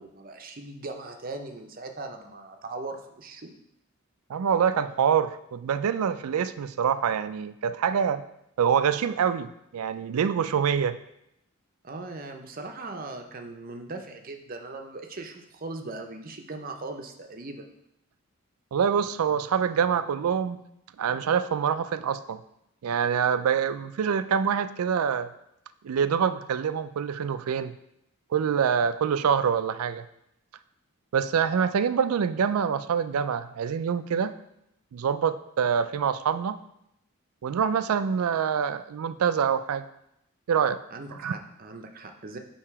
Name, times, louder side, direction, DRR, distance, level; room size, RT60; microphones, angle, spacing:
voice 1, 0.0-3.5 11.8-17.6 40.9-42.4, right 3 dB, 40° right, 4 dB, 0.6 m, -39 dB
voice 2, 4.3-8.2 8.6-11.0 18.7-20.6 21.0-22.4 22.8-25.3 25.8-27.8 28.3-30.1 31.1-34.3 34.9-36.6 37.4-39.8 40.5-40.8 41.2-41.3, right 7 dB, 85° right, 13 dB, 0.4 m, -25 dB
8.6 x 2.9 x 4.7 m, 0.80 s
head